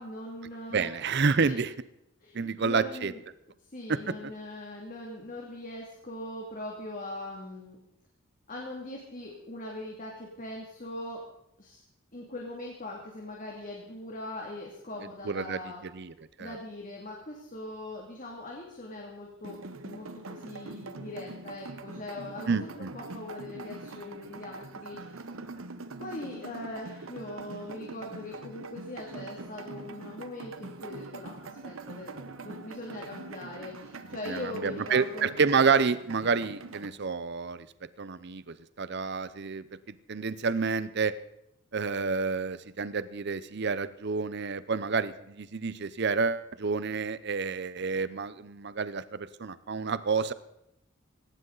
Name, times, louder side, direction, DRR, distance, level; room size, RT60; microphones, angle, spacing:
voice 1, 0.0-0.9 1.4-1.6 2.2-3.2 3.7-7.8 8.5-11.2 11.6-11.8 12.1-15.8 16.4-25.2 26.0-35.3, left 1 dB, 40° left, -1 dB, 2.5 m, -41 dB
voice 2, 0.7-1.7 2.3-3.1 3.9-4.1 15.2-15.6 15.9-16.1 16.4-16.6 22.5-22.9 34.3-37.7 38.0-41.1 41.7-50.3, right 5 dB, 55° right, 15 dB, 0.7 m, -29 dB
sound 1, 19.4-36.9, right 3 dB, 80° right, 1.1 m, -43 dB
17.5 x 17.5 x 4.0 m, 0.81 s
head